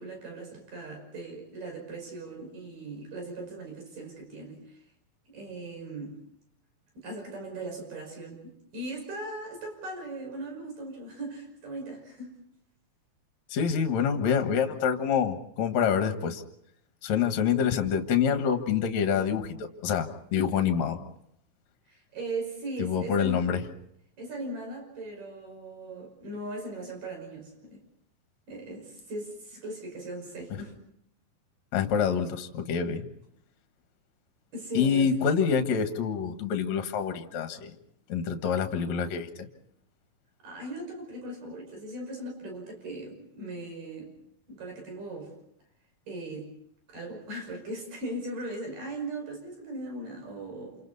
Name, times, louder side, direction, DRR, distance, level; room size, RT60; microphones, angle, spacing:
voice 1, 0.0-4.8 5.3-6.2 7.0-12.4 21.9-23.5 24.2-27.8 28.5-30.8 34.5-35.1 40.4-44.2 44.5-45.3 46.1-46.5 46.9-50.8, right 2 dB, 65° right, 2 dB, 7.2 m, -39 dB
voice 2, 13.5-16.4 17.0-21.0 22.8-23.6 31.7-33.0 34.7-37.8 38.1-39.5, left 7 dB, 60° left, 7 dB, 2.5 m, -26 dB
28.5 x 28.0 x 4.1 m, 0.73 s
omnidirectional pair, 4.1 m